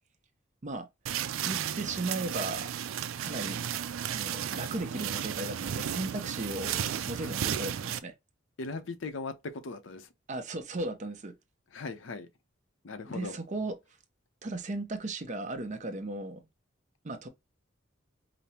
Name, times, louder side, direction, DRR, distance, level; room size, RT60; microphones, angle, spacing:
sound 1, 1.1-8.0, right 9 dB, 85° right, 0.4 m, -34 dB
voice 1, 1.4-2.7 3.2-3.6 4.1-8.1 10.3-11.3 13.1-13.8 14.4-16.4 17.0-17.3, right 2 dB, 35° right, 0.6 m, -36 dB
voice 2, 8.6-10.1 11.7-12.3 12.8-13.4, left 3 dB, 70° left, 0.6 m, -39 dB
5.1 x 2.0 x 2.8 m
head